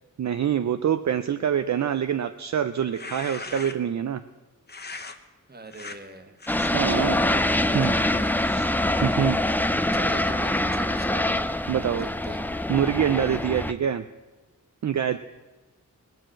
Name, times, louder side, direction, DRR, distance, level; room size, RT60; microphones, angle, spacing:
voice 1, 0.2-4.2 6.7-7.2 7.7-7.9 8.4-9.4 11.7-12.1 12.7-14.1 14.8-15.2, right 9 dB, 60° right, 10 dB, 0.5 m, -25 dB
sound 1, 2.8-4.0 4.7-5.2 5.7-6.0 6.4-6.7 7.3-9.9, left 3 dB, 30° left, 0.9 m, -41 dB
voice 2, 5.5-6.4 6.9-8.3 9.9-11.4 11.9-12.4 15.1-15.2, right 3 dB, 30° right, 7 dB, 1.3 m, -40 dB
sound 2, 6.5-13.7, left 1 dB, 5° left, 0.4 m, -25 dB
19.5 x 7.7 x 7.5 m, 1.2 s
wide cardioid pair, 135°, 33 cm